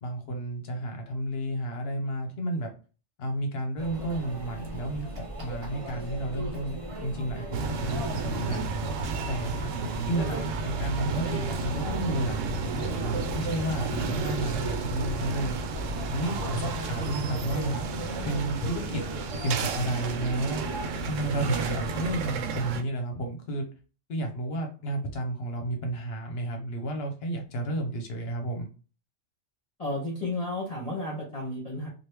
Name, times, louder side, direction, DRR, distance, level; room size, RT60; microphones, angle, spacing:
voice 1, 0.0-2.7 3.2-8.6 9.3-9.7 10.0-15.6 16.1-17.8 18.2-19.0 19.4-20.6 21.0-23.6 24.1-28.7, right 1 dB, 60° left, 3 dB, 1.0 m, -32 dB
Conversation / Chatter / Crowd, 3.8-22.2, equal, 30° right, 0.7 m, -38 dB
sound 1, 7.5-22.8, right 4 dB, 85° right, 0.9 m, -32 dB
voice 2, 9.6-10.4 29.8-31.9, left 1 dB, 35° left, -3 dB, 1.0 m, -33 dB
3.0 x 2.5 x 3.3 m, 0.36 s
omnidirectional pair, 1.3 m